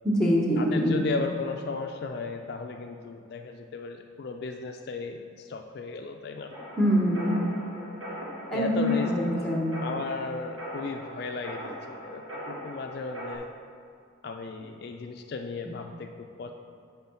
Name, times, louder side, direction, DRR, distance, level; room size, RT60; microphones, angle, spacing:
voice 1, 0.0-1.0 6.8-7.5 8.5-9.7 15.6-15.7, equal, 5° left, -2 dB, 1.1 m, -24 dB
voice 2, 0.6-6.5 8.5-9.1 9.8-13.5 14.2-16.5, left 4 dB, 55° left, 4 dB, 0.4 m, -35 dB
sound 1, 6.5-13.4, equal, 90° right, 1.2 m, -40 dB
8.7 x 3.7 x 5.6 m, 2.3 s
head